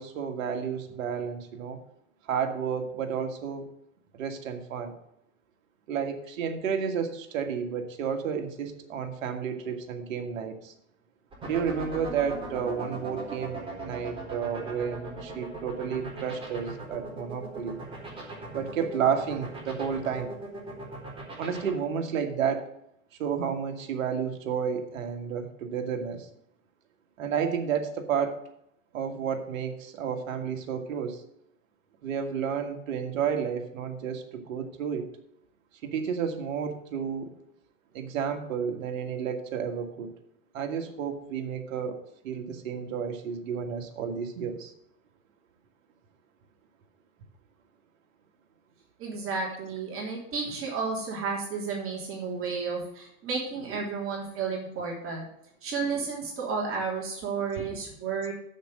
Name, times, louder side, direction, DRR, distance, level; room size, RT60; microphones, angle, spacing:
voice 1, 0.0-1.8 2.3-3.7 4.1-4.9 5.9-10.7 11.4-17.8 18.5-20.3 21.4-22.7 23.2-26.3 27.2-28.4 28.9-31.2 32.0-35.1 35.8-37.3 37.9-40.1 40.5-42.0 42.2-44.7 53.7-53.8 57.6-57.7, right 7 dB, 75° right, 5 dB, 1.9 m, -31 dB
sound 1, 11.3-21.7, right 3 dB, 15° right, 4.0 m, -38 dB
voice 2, 49.0-55.2 55.6-58.3, right 5 dB, 30° right, -3 dB, 3.2 m, -32 dB
7.5 x 6.6 x 7.8 m, 0.77 s
hypercardioid pair, 125°, 40 cm